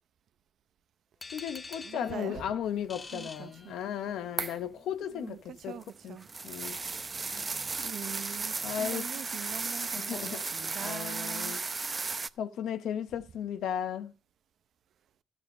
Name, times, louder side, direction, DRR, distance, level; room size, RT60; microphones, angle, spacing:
sound 1, 1.2-4.2, left 3 dB, 30° left, 0.9 m, -47 dB
voice 1, 1.3-5.8 6.0-6.2 6.4-6.8 8.6-9.1 9.5-9.6 10.0-10.4 10.8-14.1, left 9 dB, 80° left, 0.9 m, -36 dB
voice 2, 1.8-2.4 3.1-3.7 5.0-6.3 7.8-11.6, right 9 dB, 65° right, 0.8 m, -43 dB
sound 2, 4.4-4.7 5.6-12.3, right 4 dB, 30° right, 0.7 m, -35 dB
13.0 x 7.2 x 6.4 m
cardioid pair, 90°, 0 cm